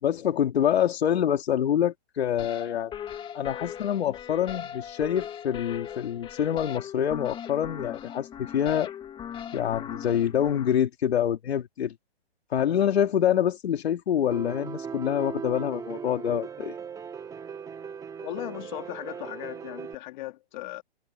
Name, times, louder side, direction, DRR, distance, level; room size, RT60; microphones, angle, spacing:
voice 1, 0.0-2.9 3.3-8.9 9.5-11.9 12.5-16.7, left 9 dB, 75° left, 2.7 m, -26 dB
sound 1, 2.4-10.7, left 9 dB, 15° left, 2.2 m, -39 dB
Piano, 14.3-19.9, right 6 dB, 10° right, 2.5 m, -38 dB
voice 2, 18.2-20.8, left 16 dB, 45° left, 3.7 m, -37 dB
hypercardioid pair, 155°, 32 cm